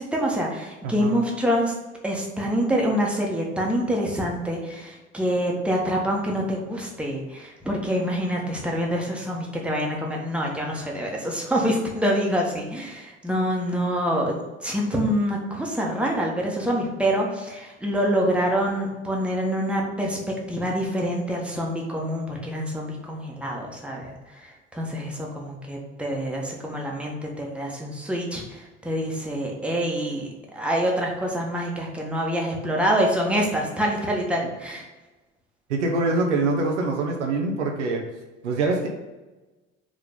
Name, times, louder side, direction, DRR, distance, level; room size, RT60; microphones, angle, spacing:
voice 1, 0.0-1.7 2.0-34.9, equal, 5° right, -1 dB, 1.5 m, -26 dB
voice 2, 0.8-1.1 35.7-38.0 38.4-38.9, right 3 dB, 70° right, 1 dB, 1.0 m, -24 dB
5.2 x 3.7 x 5.3 m, 1.1 s
figure-of-eight pair, 65°, 37 cm